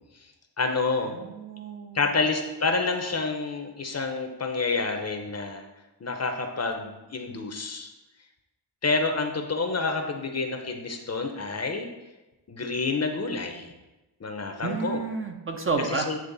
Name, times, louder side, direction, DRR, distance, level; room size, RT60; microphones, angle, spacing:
voice 1, 0.6-1.2 1.9-5.6 6.0-7.9 8.8-11.9 12.5-13.7 14.2-15.0 15.9-16.2, left 3 dB, 35° left, 5 dB, 0.8 m, -28 dB
voice 2, 1.1-2.1 14.6-16.1, right 4 dB, 30° right, 3 dB, 0.7 m, -30 dB
8.9 x 3.1 x 3.9 m, 1.1 s
cardioid pair, 75°, 43 cm